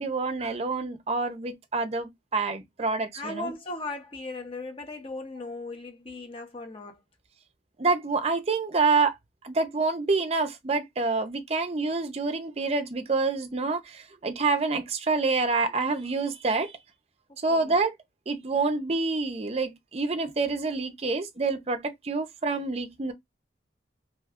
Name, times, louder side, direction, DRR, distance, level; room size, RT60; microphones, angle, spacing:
voice 1, 0.0-3.5 7.8-9.2 9.4-16.8 17.4-17.9 18.3-23.1, right 3 dB, 35° right, 0.4 m, -27 dB
voice 2, 3.1-7.0 17.5-17.8, left 2 dB, 30° left, 0.7 m, -37 dB
2.7 x 2.2 x 3.4 m
head